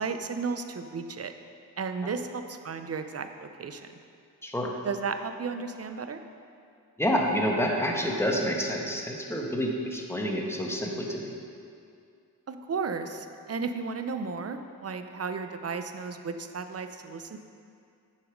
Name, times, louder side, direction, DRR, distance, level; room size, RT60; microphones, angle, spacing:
voice 1, 0.0-1.3 1.8-3.9 4.8-6.2 12.5-17.4, right 5 dB, 40° right, 8 dB, 0.7 m, -34 dB
voice 2, 4.4-4.7 7.0-11.3, equal, 5° left, 0 dB, 1.4 m, -28 dB
9.2 x 7.2 x 5.2 m, 2.4 s
cardioid pair, 75°, 39 cm